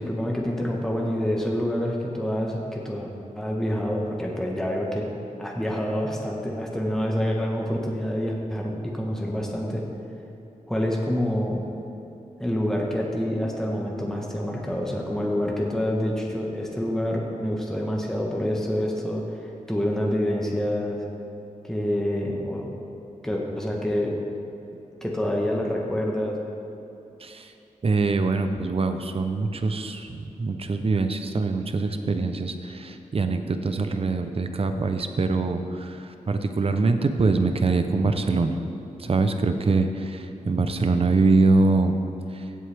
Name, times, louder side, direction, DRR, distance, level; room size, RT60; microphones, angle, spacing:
voice 1, 0.0-3.1 3.3-5.1 5.4-9.8 10.7-11.6 12.4-21.0 21.6-22.7 23.2-24.2 25.0-26.4, equal, 5° left, -2 dB, 1.1 m, -27 dB
voice 2, 27.2-27.5 27.8-38.6 39.0-42.0 42.3-42.5, right 3 dB, 45° right, 7 dB, 0.6 m, -24 dB
15.5 x 7.8 x 3.4 m, 2.9 s
wide cardioid pair, 115°, 14 cm